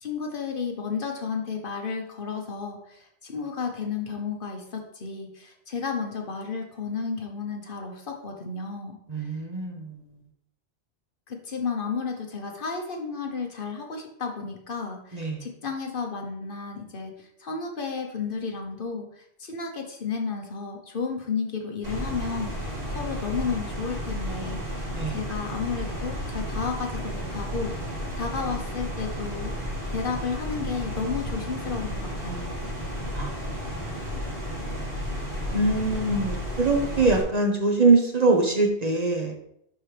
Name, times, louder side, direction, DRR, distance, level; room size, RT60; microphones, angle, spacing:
voice 1, 0.0-9.3 11.3-29.5 29.9-32.5, left 5 dB, 55° left, 3 dB, 1.1 m, -32 dB
voice 2, 9.1-9.9 15.1-15.4 24.9-25.2 33.1-33.3 35.5-39.4, right 3 dB, 40° right, 1 dB, 1.1 m, -23 dB
sound 1, 21.8-37.2, equal, 60° right, 2.4 m, -32 dB
10.5 x 4.3 x 3.3 m, 0.73 s
omnidirectional pair, 1.1 m